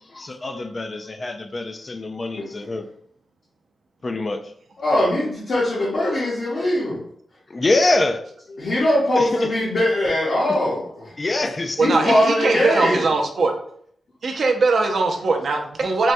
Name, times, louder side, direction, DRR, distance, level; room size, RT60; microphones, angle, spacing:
voice 1, 0.1-2.9 4.0-4.4 7.5-8.2 9.2-9.5 11.2-12.2, left 2 dB, 25° left, 0.3 m, -24 dB
voice 2, 2.3-2.7 4.8-7.0 8.6-11.1 11.8-13.1, left 1 dB, 50° left, 0.8 m, -21 dB
voice 3, 11.8-13.5 14.2-16.1, right 3 dB, 55° right, 0.5 m, -20 dB
4.4 x 2.2 x 2.6 m
wide cardioid pair, 170°, 0 cm